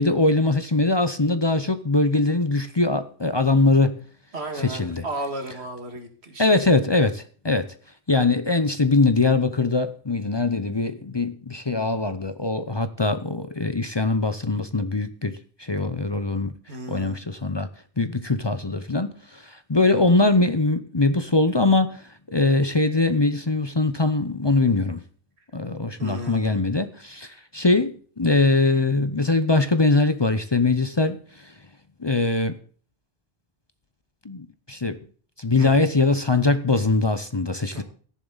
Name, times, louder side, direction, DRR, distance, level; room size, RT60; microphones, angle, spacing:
voice 1, 0.0-4.0 4.6-5.0 6.4-7.7 8.1-16.5 16.9-17.7 18.0-25.0 25.5-31.5 32.0-32.6 34.2-35.0 35.4-37.8, left 3 dB, 30° left, 0.7 m, -22 dB
voice 2, 4.3-6.5 16.7-17.3 26.0-26.6 35.6-35.8 37.7-37.8, right 1 dB, 80° right, 2.4 m, -34 dB
14.0 x 10.5 x 4.0 m
omnidirectional pair, 1.1 m